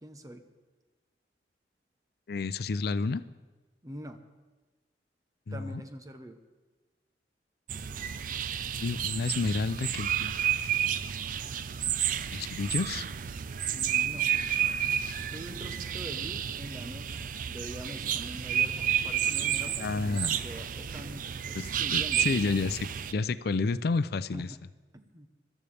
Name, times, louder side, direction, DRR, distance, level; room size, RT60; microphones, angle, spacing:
voice 1, 0.0-0.4 3.8-4.2 5.5-6.4 13.7-14.3 15.3-22.4 24.3-24.6 24.9-25.3, equal, 20° right, 7 dB, 0.9 m, -44 dB
voice 2, 2.3-3.2 5.5-5.8 8.7-10.4 12.2-13.1 19.8-20.4 21.5-24.5, left 4 dB, 60° left, 15 dB, 0.5 m, -30 dB
sound 1, 7.7-23.1, right 9 dB, 50° right, 0.4 m, -31 dB
21.5 x 13.5 x 3.4 m, 1.3 s
head